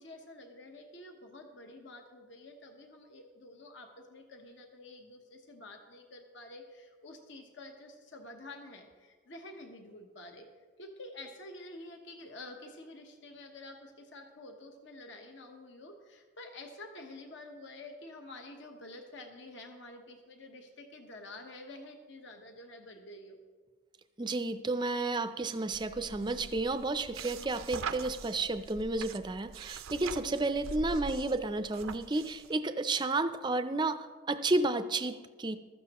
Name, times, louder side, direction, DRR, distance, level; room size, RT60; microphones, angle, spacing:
voice 1, 0.0-10.5 10.8-23.4, left 2 dB, 60° left, 4 dB, 1.1 m, -49 dB
voice 2, 24.2-35.6, right 2 dB, 20° right, 10 dB, 0.5 m, -32 dB
sound 1, 25.7-32.5, right 5 dB, 85° right, 0.6 m, -43 dB
15.0 x 13.0 x 3.0 m, 1.5 s
head